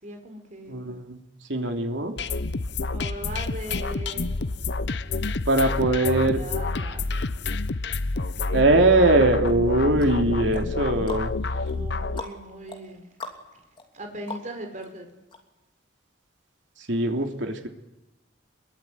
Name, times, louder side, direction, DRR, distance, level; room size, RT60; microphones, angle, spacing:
voice 1, 0.0-0.9 2.9-4.3 5.8-7.0 11.7-13.0 13.9-15.1, right 1 dB, 40° right, 4 dB, 4.8 m, -39 dB
voice 2, 0.7-1.2 1.5-2.2 5.4-6.4 8.5-11.3 16.8-17.7, right 2 dB, 75° right, 4 dB, 3.1 m, -21 dB
sound 1, 2.2-12.2, left 3 dB, 60° left, 0.9 m, -28 dB
sound 2, 9.5-14.9 15.3-15.4, left 2 dB, 25° left, 3.2 m, -42 dB
26.5 x 22.5 x 9.5 m, 0.99 s
head